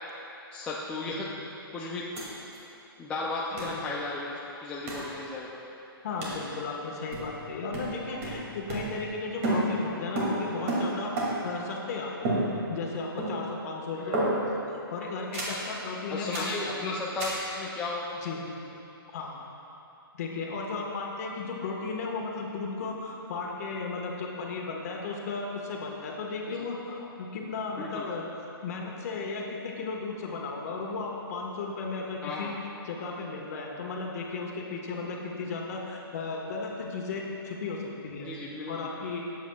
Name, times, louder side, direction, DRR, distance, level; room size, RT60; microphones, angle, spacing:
voice 1, 0.5-1.3 1.7-2.1 3.0-5.6 13.9-14.4 16.1-18.2 26.5-26.6 27.8-28.1 32.2-32.6 38.2-38.9, left 3 dB, 10° left, -5 dB, 0.5 m, -35 dB
sound 1, 2.2-2.3 2.5-2.6 3.6-3.8 4.9-5.1 6.2-6.5 7.1-7.5 7.7-9.2 9.4-11.6 12.2-12.9 13.2-13.6 14.1-14.6 15.3-15.7 16.3-16.6 17.2-17.5, right 1 dB, 35° right, 2.5 m, -31 dB
voice 2, 6.0-12.4 12.7-14.6 14.9-16.7 18.2-18.4 19.1-19.4 20.2-28.3 28.6-32.5 32.8-38.3 38.7-39.2, left 4 dB, 40° left, -1 dB, 1.5 m, -35 dB
19.0 x 8.3 x 2.4 m, 2.9 s
hypercardioid pair, 160°, 13 cm